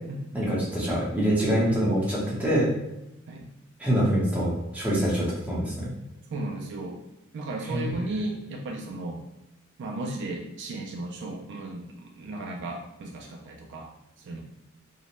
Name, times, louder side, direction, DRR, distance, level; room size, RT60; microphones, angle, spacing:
voice 1, 0.3-2.7 3.8-5.9 7.7-8.0, equal, 5° right, -7 dB, 0.8 m, -25 dB
voice 2, 6.3-7.0 7.3-9.2 9.8-13.9 14.2-14.4, right 2 dB, 55° right, 1 dB, 0.3 m, -35 dB
2.5 x 2.0 x 3.0 m, 0.90 s
head